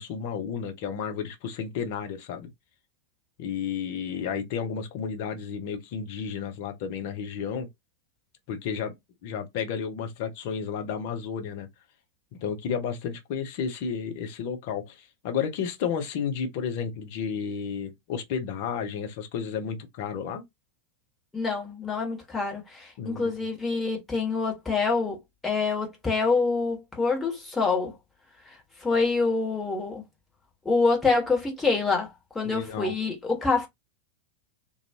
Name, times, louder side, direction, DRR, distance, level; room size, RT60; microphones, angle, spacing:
voice 1, 0.0-2.5 3.4-7.7 8.5-9.0 9.2-11.7 12.3-20.4 23.0-23.5 32.4-33.0, left 7 dB, 50° left, 0.7 m, -32 dB
voice 2, 21.3-27.9 28.8-30.0 30.6-32.1 32.3-33.7, left 4 dB, 10° left, 1.3 m, -26 dB
2.5 x 2.3 x 2.8 m
figure-of-eight pair, 90°, 0 cm